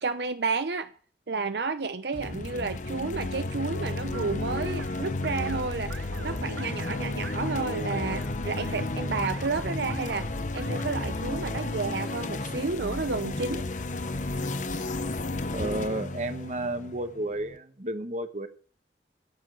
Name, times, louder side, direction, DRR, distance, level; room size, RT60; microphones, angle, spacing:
voice 1, 0.0-0.9 1.3-10.3 10.5-13.6, right 4 dB, 70° right, 0.7 m, -31 dB
sound 1, 2.1-17.5, left 2 dB, 45° left, 0.9 m, -32 dB
sound 2, 4.1-11.2, right 4 dB, 85° right, 1.3 m, -46 dB
voice 2, 15.5-18.5, right 1 dB, 40° right, 1.2 m, -32 dB
14.5 x 7.2 x 7.7 m
head